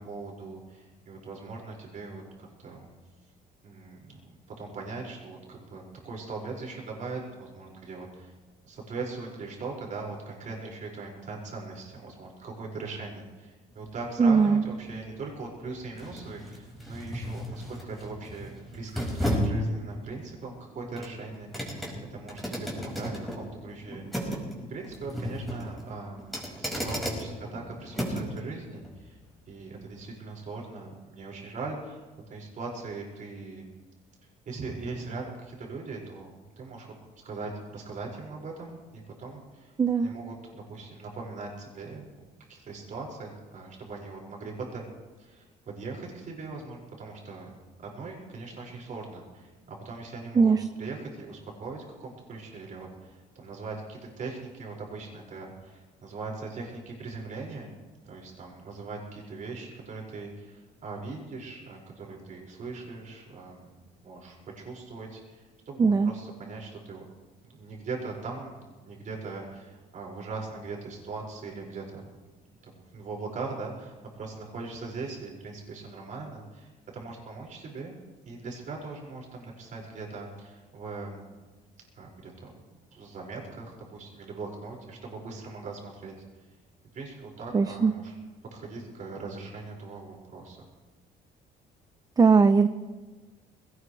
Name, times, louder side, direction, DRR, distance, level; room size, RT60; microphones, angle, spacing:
voice 1, 0.0-2.9 3.6-8.4 8.6-21.8 22.1-24.3 24.7-29.2 29.5-33.6 34.5-36.9 37.2-39.7 40.0-42.1 42.5-44.8 45.2-47.5 47.8-50.5 50.8-57.7 58.0-63.7 64.0-67.0 67.4-72.0 72.6-77.9 78.2-81.3 81.9-82.6 82.9-86.1 86.9-88.2 88.5-90.6, right 3 dB, 50° right, -2 dB, 5.7 m, -40 dB
sound 1, 13.7-28.4 28.8-29.0, equal, ahead, 5.5 m, -35 dB
voice 2, 14.2-14.6 39.8-40.1 50.4-50.6 65.8-66.1 87.5-87.9 92.2-92.7, right 5 dB, 20° right, 10 dB, 0.6 m, -20 dB
20.5 x 18.5 x 3.3 m, 1.3 s
cardioid pair, 110°, 17 cm